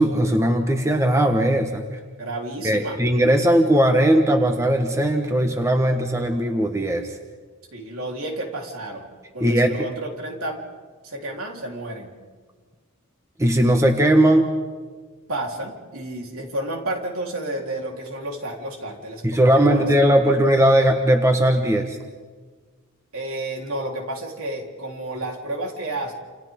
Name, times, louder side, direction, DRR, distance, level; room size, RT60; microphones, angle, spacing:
voice 1, 0.0-1.8 2.6-7.1 9.4-9.9 13.4-14.5 19.2-22.0, right 1 dB, 15° right, 4 dB, 1.2 m, -18 dB
voice 2, 2.2-3.0 7.7-10.6 11.0-12.1 15.3-20.2 23.1-26.1, right 1 dB, 75° right, -1 dB, 3.8 m, -31 dB
28.5 x 28.5 x 3.7 m, 1.5 s
head